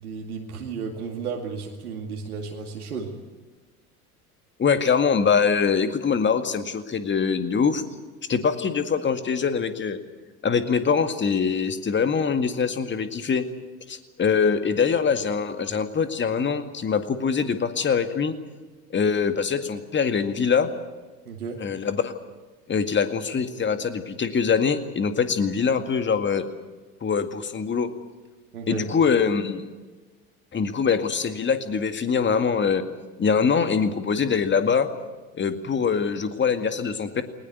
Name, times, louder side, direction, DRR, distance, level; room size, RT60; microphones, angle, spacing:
voice 1, 0.0-3.2 21.3-21.6 28.5-28.9, right 5 dB, 75° right, 1 dB, 2.4 m, -33 dB
voice 2, 4.6-7.8 8.3-10.0 10.4-13.4 13.9-18.4 18.9-20.7 21.6-22.1 22.7-26.4 27.0-27.9 28.7-29.6 30.5-32.8 33.2-34.9 35.3-37.2, left 6 dB, 25° left, 9 dB, 2.1 m, -23 dB
20.5 x 20.0 x 9.4 m, 1.3 s
figure-of-eight pair, 70°, 44 cm